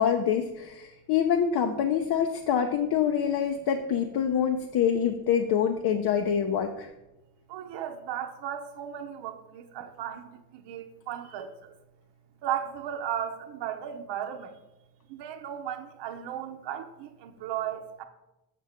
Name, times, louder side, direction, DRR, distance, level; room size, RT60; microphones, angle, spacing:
voice 1, 0.0-6.9, left 8 dB, 60° left, 0.6 m, -26 dB
voice 2, 7.5-11.7 12.4-14.6 15.1-18.0, right 10 dB, 75° right, 0.7 m, -35 dB
7.5 x 5.5 x 3.5 m
cardioid pair, 80°, 43 cm